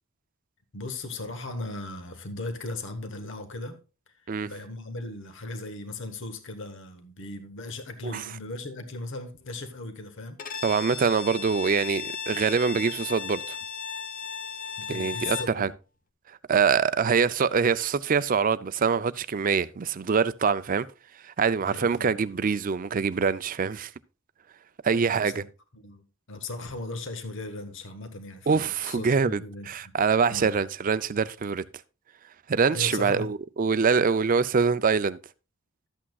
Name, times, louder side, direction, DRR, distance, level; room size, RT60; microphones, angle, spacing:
voice 1, 0.7-3.8 4.2-10.4 14.8-15.7 21.6-22.2 25.1-25.5 25.7-29.9 30.3-30.6 32.7-33.3, left 2 dB, 60° left, 1.2 m, -37 dB
Bowed string instrument, 10.4-15.6, left 6 dB, 40° left, 0.7 m, -36 dB
voice 2, 10.6-13.6 14.9-15.7 16.3-20.9 21.2-23.9 24.8-25.4 28.5-31.6 32.5-35.2, right 5 dB, 40° right, 0.4 m, -24 dB
12.5 x 8.5 x 2.3 m
head